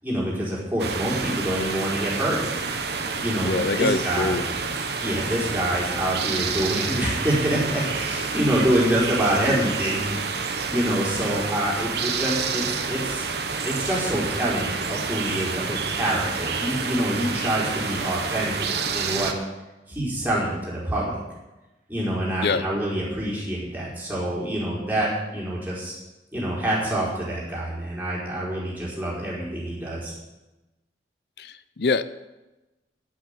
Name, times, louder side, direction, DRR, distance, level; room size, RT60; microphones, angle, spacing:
voice 1, 0.0-2.4 3.2-4.5 5.0-13.3 13.6-19.3 19.9-21.1 21.9-25.9 26.3-30.1, right 1 dB, 10° right, -6 dB, 4.5 m, -26 dB
sound 1, 0.8-19.3, right 5 dB, 65° right, 1.2 m, -29 dB
voice 2, 3.4-4.4 22.4-22.6 31.4-32.0, left 4 dB, 60° left, 14 dB, 0.5 m, -24 dB
9.0 x 8.7 x 9.7 m, 1.1 s
head